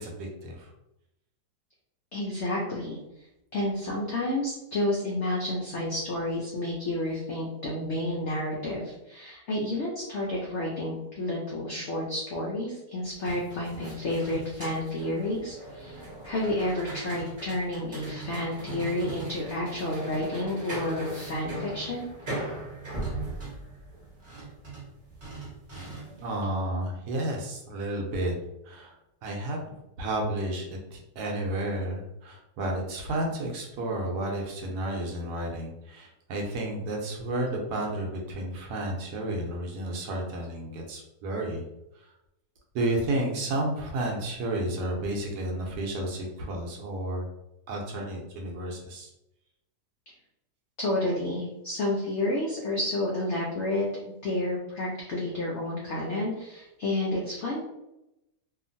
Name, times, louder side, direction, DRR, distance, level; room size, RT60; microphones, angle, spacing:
voice 1, 0.0-0.7 25.8-28.3 28.6-28.9 29.2-29.6 30.0-41.7 42.7-47.3 47.7-49.1, right 1 dB, 70° right, 0 dB, 1.1 m, -32 dB
voice 2, 2.1-3.0 3.5-22.1 50.8-53.9 54.2-57.6, left 1 dB, 80° left, -3 dB, 0.6 m, -30 dB
sound 1, 13.0-26.3, right 2 dB, 35° right, 0.9 m, -39 dB
2.8 x 2.4 x 2.6 m, 0.88 s
omnidirectional pair, 1.9 m